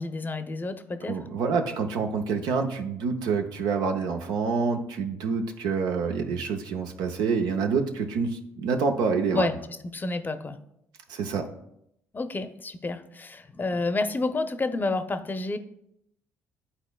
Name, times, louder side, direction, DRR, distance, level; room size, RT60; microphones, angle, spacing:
voice 1, 0.0-1.2 9.3-9.5 9.9-10.6 12.1-15.6, left 3 dB, 25° left, 9 dB, 0.7 m, -29 dB
voice 2, 1.1-9.5 11.1-11.5, right 5 dB, 70° right, 4 dB, 0.7 m, -27 dB
11.5 x 4.1 x 2.3 m, 0.78 s
hypercardioid pair, 50°, 7 cm